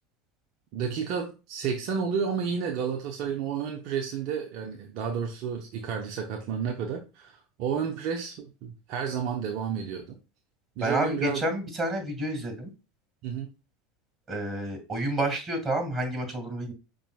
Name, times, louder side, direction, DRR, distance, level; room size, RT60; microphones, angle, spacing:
voice 1, 0.7-10.1 10.8-11.4 13.2-13.5, right 7 dB, 55° right, 2 dB, 0.7 m, -31 dB
voice 2, 10.8-12.7 14.3-16.7, right 1 dB, 25° right, 5 dB, 2.2 m, -29 dB
5.5 x 3.8 x 2.4 m, 0.30 s
hypercardioid pair, 80°, 0 cm